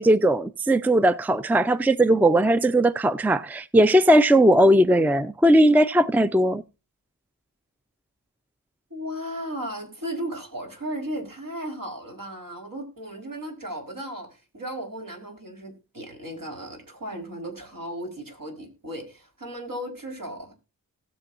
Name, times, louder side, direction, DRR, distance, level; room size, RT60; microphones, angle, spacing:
voice 1, 0.0-6.6, right 1 dB, 5° right, 0.5 m, -18 dB
voice 2, 8.9-20.6, equal, 65° right, 4.3 m, -35 dB
19.0 x 6.9 x 2.6 m
wide cardioid pair, 70°, 36 cm